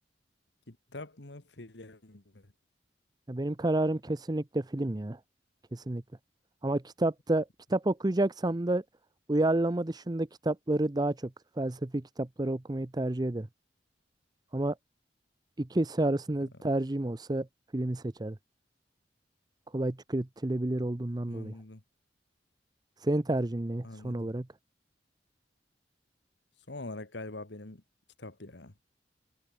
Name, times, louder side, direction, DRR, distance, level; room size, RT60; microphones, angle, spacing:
voice 1, 0.7-2.5 16.4-16.5 21.3-21.8 23.8-24.3 26.6-27.8 28.2-28.7, left 2 dB, 75° left, 1.9 m, -44 dB
voice 2, 3.3-5.2 5.7-6.0 6.6-8.8 9.3-11.3 11.6-13.5 14.5-14.8 15.6-17.5 17.7-18.4 19.7-21.5 23.0-24.5, right 1 dB, 25° right, 0.7 m, -30 dB
head